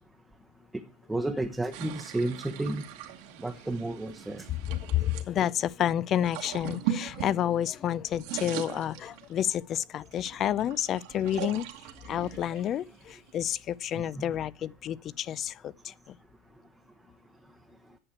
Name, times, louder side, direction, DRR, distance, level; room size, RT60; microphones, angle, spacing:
voice 1, 1.1-2.8 3.4-4.4 14.2-14.3, right 2 dB, 5° right, 0.9 m, -31 dB
sound 1, 1.7-5.3 6.1-7.8 8.1-9.6 10.1-13.5, right 11 dB, 65° right, 1.5 m, -39 dB
voice 2, 4.7-11.6 12.1-15.9, left 10 dB, 35° left, 0.4 m, -30 dB
8.7 x 6.5 x 8.1 m
supercardioid pair, 130°, 0 cm